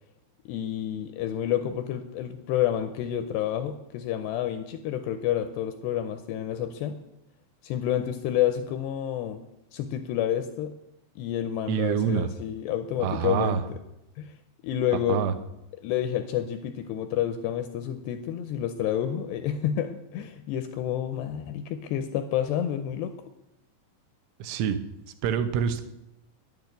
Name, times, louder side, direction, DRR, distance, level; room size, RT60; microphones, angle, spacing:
voice 1, 0.5-7.0 7.6-9.4 9.7-10.7 11.2-13.8 14.2-14.3 14.6-15.2 15.8-23.1, left 10 dB, 85° left, 8 dB, 2.5 m, -29 dB
voice 2, 11.7-12.3 13.0-13.6 15.1-15.3 24.4-24.8 25.2-25.8, right 8 dB, 90° right, 9 dB, 3.4 m, -26 dB
10.5 x 9.0 x 8.0 m, 0.89 s
omnidirectional pair, 5.4 m